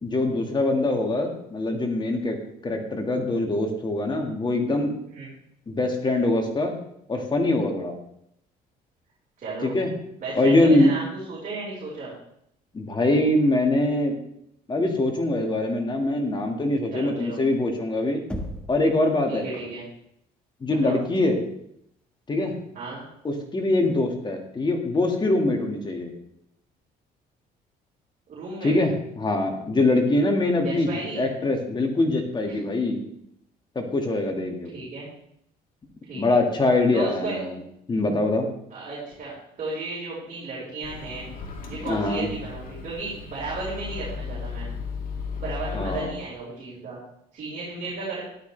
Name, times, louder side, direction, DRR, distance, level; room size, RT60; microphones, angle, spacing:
voice 1, 0.0-2.4 2.6-4.9 5.7-6.7 7.1-8.0 9.6-9.9 10.3-10.9 12.7-14.2 14.7-18.2 18.7-19.4 20.6-21.4 22.3-22.5 23.2-26.1 28.6-28.9 29.2-30.9 31.2-33.0 33.8-34.7 36.1-37.6 37.9-38.5 41.8-42.3 45.7-46.1, left 2 dB, 25° left, 3 dB, 2.1 m, -23 dB
voice 2, 9.4-9.8 10.2-12.1 16.9-17.4 19.3-19.8 20.7-21.0 22.7-23.1 28.3-28.7 30.6-31.2 32.4-32.6 34.7-35.1 36.0-36.4 36.9-37.4 38.7-41.3 41.6-44.7 45.4-47.0 47.3-48.2, right 3 dB, 50° right, -7 dB, 5.1 m, -34 dB
Knock, 18.3-18.9, equal, 5° left, 1.6 m, -33 dB
Microwave oven, 40.8-46.0, left 5 dB, 55° left, 2.7 m, -35 dB
13.0 x 11.5 x 3.4 m, 0.73 s
cardioid pair, 110°, 17 cm